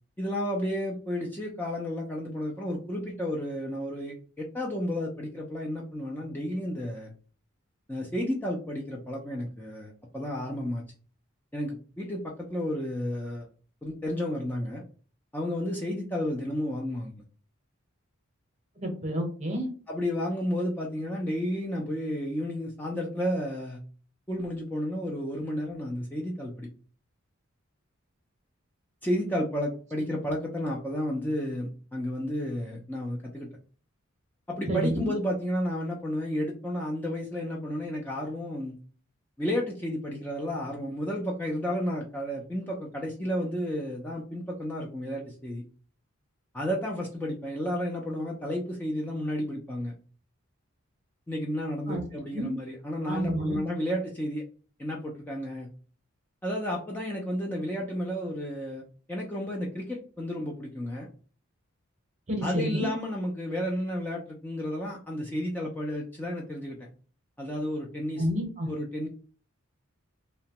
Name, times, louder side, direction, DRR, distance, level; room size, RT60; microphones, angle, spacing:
voice 1, 0.2-7.1 7.9-10.8 11.5-13.5 13.8-14.8 15.3-17.1 19.9-23.8 24.3-26.7 29.0-33.5 34.5-38.7 39.4-45.6 46.5-49.9 51.3-54.4 54.8-55.7 56.4-58.8 59.1-61.1 62.4-66.9 67.4-68.2 68.7-69.1, equal, 10° left, -2 dB, 0.3 m, -32 dB
voice 2, 18.8-19.7 34.7-35.1 51.9-52.0 52.3-52.5 53.1-53.6 62.3-62.9 68.2-68.7, equal, 35° right, 3 dB, 0.7 m, -29 dB
2.8 x 2.1 x 2.8 m, 0.40 s
head